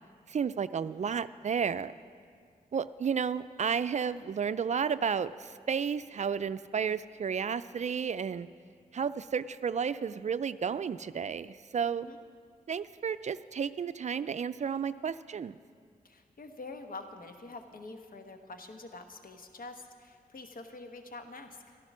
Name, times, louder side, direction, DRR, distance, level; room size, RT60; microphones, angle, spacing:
voice 1, 0.3-1.9 2.7-8.5 8.9-12.1 12.7-15.6, right 6 dB, 45° right, 14 dB, 0.4 m, -32 dB
voice 2, 11.8-12.2 16.0-21.8, left 3 dB, 60° left, 6 dB, 1.2 m, -46 dB
13.0 x 11.5 x 6.0 m, 2.1 s
supercardioid pair, 45°, 16 cm